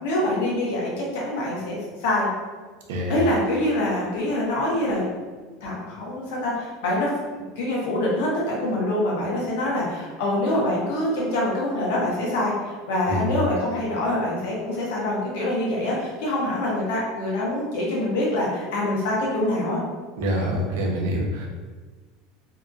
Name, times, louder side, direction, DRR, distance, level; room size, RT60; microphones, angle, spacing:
voice 1, 0.0-2.3 3.1-5.0 5.6-19.8, left 1 dB, 80° left, -4 dB, 0.9 m, -25 dB
voice 2, 20.2-21.6, equal, 85° right, -1 dB, 0.6 m, -26 dB
2.8 x 2.4 x 2.5 m, 1.4 s
supercardioid pair, 140°, 0 cm